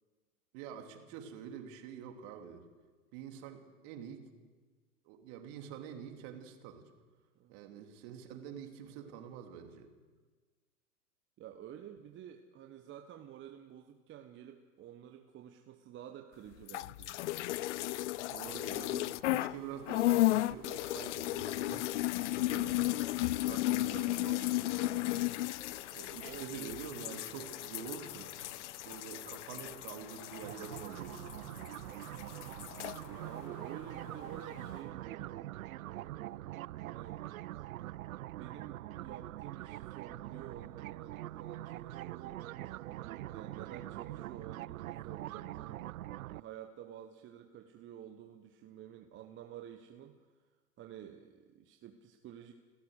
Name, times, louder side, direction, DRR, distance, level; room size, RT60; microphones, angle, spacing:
voice 1, 0.5-2.7 3.1-4.2 5.0-6.8 7.5-9.9 18.1-21.9 22.3-23.0 23.4-25.1 25.9-28.3 28.8-31.3, right 8 dB, 45° right, 4 dB, 3.1 m, -47 dB
voice 2, 11.4-17.2 24.8-24.9 26.2-26.8 27.3-27.5 28.1-28.3 29.5-29.8 31.5-31.8 33.2-35.5 35.7-37.2 38.3-45.9 46.3-50.3 50.8-52.5, right 10 dB, 25° right, 5 dB, 1.2 m, -51 dB
sound 1, 16.6-19.6 19.9-31.8 32.0-33.0, left 16 dB, 50° left, 0.5 m, -34 dB
sound 2, 17.3-34.8, left 2 dB, 75° left, 4.9 m, -56 dB
sound 3, 30.4-46.4, right 15 dB, 60° right, 0.5 m, -44 dB
30.0 x 13.0 x 6.6 m, 1.4 s
figure-of-eight pair, 100°, 47 cm